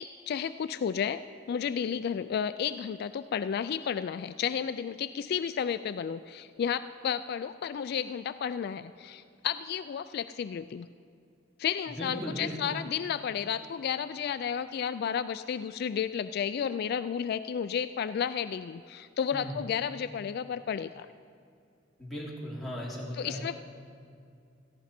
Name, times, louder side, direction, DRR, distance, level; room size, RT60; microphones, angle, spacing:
voice 1, 0.0-10.9 11.6-21.1 23.1-23.6, left 7 dB, 55° left, 12 dB, 0.3 m, -32 dB
voice 2, 12.0-12.7 19.3-19.5 22.0-23.5, equal, ahead, -6 dB, 2.9 m, -37 dB
17.0 x 14.0 x 4.3 m, 2.4 s
head